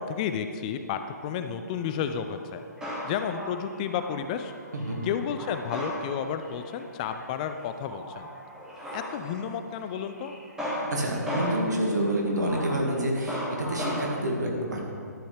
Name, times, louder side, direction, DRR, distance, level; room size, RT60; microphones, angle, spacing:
voice 1, 0.0-4.5 5.0-8.3 8.9-10.4, left 7 dB, 25° left, 8 dB, 0.3 m, -32 dB
Male speech man speaking, 1.7-14.2, equal, 5° right, 2.2 m, -36 dB
voice 2, 10.9-14.9, right 1 dB, 70° right, 0 dB, 1.9 m, -28 dB
12.0 x 7.6 x 3.4 m, 2.2 s
figure-of-eight pair, 130°, 10 cm